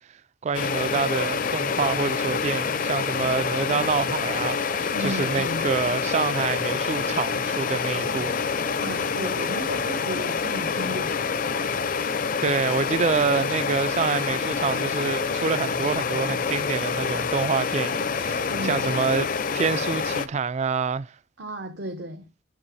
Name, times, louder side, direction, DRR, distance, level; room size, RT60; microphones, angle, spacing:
voice 1, 0.4-8.3 12.4-19.3 19.5-21.2, right 5 dB, 35° right, 0.3 m, -27 dB
sound 1, 0.5-20.3, left 5 dB, 45° left, 0.5 m, -27 dB
voice 2, 4.9-5.7 8.8-11.3 18.5-19.0 21.4-22.3, equal, 60° right, 0.8 m, -34 dB
8.7 x 6.8 x 2.7 m
head